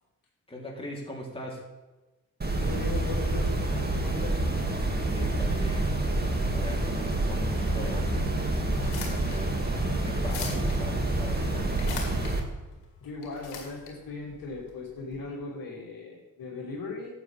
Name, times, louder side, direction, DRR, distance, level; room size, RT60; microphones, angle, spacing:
voice 1, 0.5-1.7 5.1-6.0 6.5-8.3 8.8-11.8, left 1 dB, 15° left, -2 dB, 3.3 m, -40 dB
sound 1, 2.4-12.4, right 2 dB, 25° right, 2.2 m, -28 dB
voice 2, 2.6-4.4 13.0-17.1, left 3 dB, 60° left, -3 dB, 2.6 m, -38 dB
sound 2, 8.7-15.2, left 5 dB, 85° left, 1.9 m, -42 dB
12.0 x 8.5 x 3.5 m, 1.1 s
supercardioid pair, 50°, 38 cm